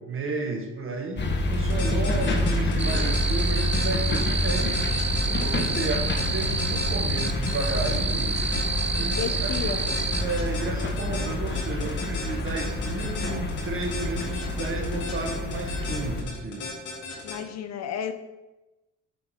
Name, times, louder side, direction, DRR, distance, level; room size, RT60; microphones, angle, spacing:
voice 1, 0.0-5.0 5.3-8.4 8.9-9.8 10.2-16.7, right 3 dB, 45° right, 2 dB, 1.5 m, -33 dB
sound 1, 1.1-16.2, left 1 dB, 35° left, 1.1 m, -28 dB
sound 2, 1.5-17.4, left 5 dB, 85° left, 2.1 m, -36 dB
voice 2, 2.7-3.2 9.1-9.8 17.2-18.1, left 8 dB, 60° left, 8 dB, 0.8 m, -33 dB
sound 3, 2.8-10.2, right 5 dB, 20° right, 0.5 m, -30 dB
7.0 x 3.9 x 4.7 m, 1.0 s
cardioid pair, 90°, 30 cm